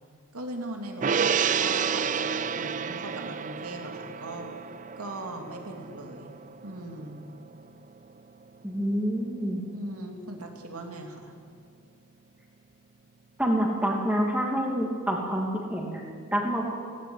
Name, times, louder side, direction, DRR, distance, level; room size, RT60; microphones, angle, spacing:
voice 1, 0.3-4.5 5.0-6.3 6.6-7.2 9.7-11.3, right 1 dB, 85° right, 3 dB, 2.8 m, -39 dB
Gong, 1.0-7.6 8.0-8.1, right 7 dB, 35° right, 0.4 m, -30 dB
voice 2, 8.6-9.6 13.4-16.6, equal, 5° right, -1 dB, 2.7 m, -27 dB
17.0 x 15.5 x 9.7 m, 2.1 s
head